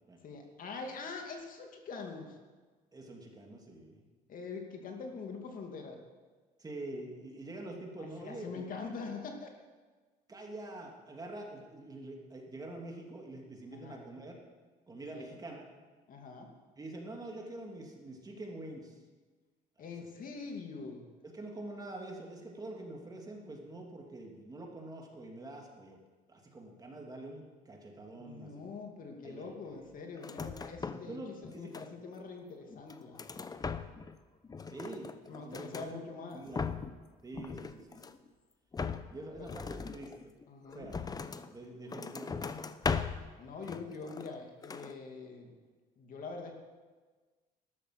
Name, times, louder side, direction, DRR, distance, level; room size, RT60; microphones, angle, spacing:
voice 1, 0.2-2.4 4.3-6.0 8.0-9.6 13.7-14.0 15.1-15.4 16.1-16.5 19.8-21.1 28.2-33.2 35.3-36.4 39.4-39.5 40.5-40.9 43.4-45.6 46.0-46.5, left 4 dB, 55° left, 2 dB, 2.4 m, -44 dB
voice 2, 2.9-4.0 6.6-8.6 10.3-14.3 14.9-15.7 16.8-19.0 19.8-19.9 21.2-26.0 26.3-28.5 29.2-29.8 30.9-31.7 34.7-36.0 36.3-36.7 37.2-38.0 39.1-40.3 40.7-41.0 41.5-42.7, right 2 dB, 20° right, 0 dB, 2.7 m, -46 dB
sound 1, 30.2-31.1 31.4-32.2 32.7-34.2 34.4-35.9 36.3-37.0 37.3-38.3 38.7-41.5 41.9-43.3 43.6-44.4 44.6-45.0, left 5 dB, 25° left, 0.7 m, -39 dB
13.0 x 12.0 x 6.0 m, 1.4 s
cardioid pair, 110°, 17 cm